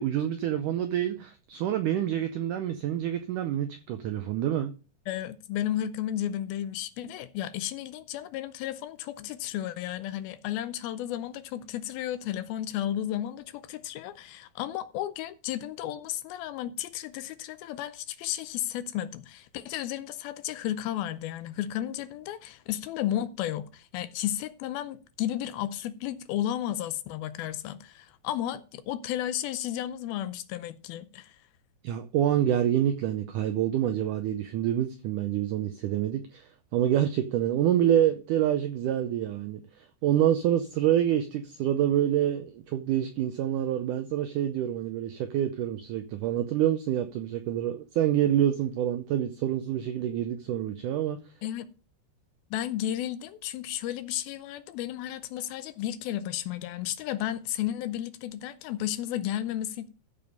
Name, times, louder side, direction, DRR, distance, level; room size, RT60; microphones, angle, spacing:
voice 1, 0.0-4.7 31.8-51.2, right 11 dB, 85° right, 1.8 m, -27 dB
voice 2, 5.1-31.4 51.4-51.7 52.5-59.9, left 12 dB, 80° left, 2.4 m, -33 dB
14.0 x 5.2 x 5.2 m
omnidirectional pair, 4.5 m